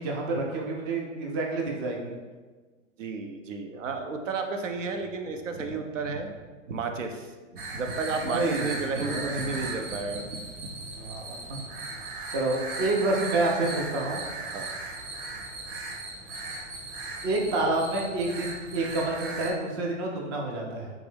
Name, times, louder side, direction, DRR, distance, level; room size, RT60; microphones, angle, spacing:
voice 1, 0.0-2.1 8.2-8.7 9.0-9.6 11.0-11.8 12.3-14.2 17.2-20.9, right 2 dB, 20° right, 0 dB, 0.3 m, -28 dB
voice 2, 3.0-6.3 6.7-10.9 14.5-14.7, right 4 dB, 80° right, 5 dB, 0.6 m, -33 dB
sound 1, 7.6-19.5, right 3 dB, 45° right, 0.8 m, -37 dB
3.5 x 2.6 x 3.4 m, 1.3 s
hypercardioid pair, 120°, 38 cm